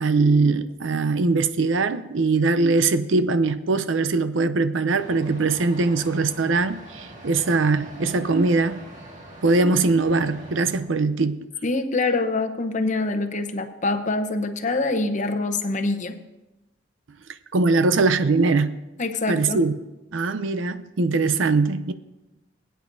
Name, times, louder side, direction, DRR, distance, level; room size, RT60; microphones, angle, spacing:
voice 1, 0.0-8.8 9.4-11.4 17.5-18.8 19.3-19.7 20.1-21.9, right 3 dB, 80° right, 0.6 m, -21 dB
sound 1, 4.9-10.8, right 1 dB, 40° right, 1.9 m, -43 dB
voice 2, 11.6-16.2 19.0-19.6, left 3 dB, 40° left, 0.8 m, -25 dB
21.0 x 9.1 x 2.6 m
head